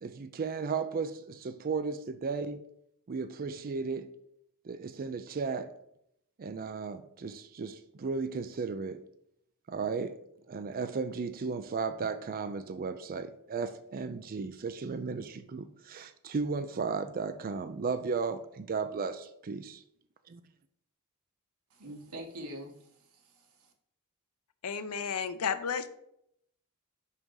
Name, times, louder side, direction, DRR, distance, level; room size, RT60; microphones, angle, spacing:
voice 1, 0.0-2.6 3.1-4.1 4.6-5.7 6.4-9.0 9.7-10.1 10.5-19.8 20.3-20.4, right 4 dB, 40° right, 0.4 m, -35 dB
voice 2, 21.7-23.7, right 1 dB, 80° right, 1.6 m, -45 dB
voice 3, 24.6-25.9, left 6 dB, 85° left, 0.6 m, -32 dB
5.6 x 5.2 x 4.8 m
head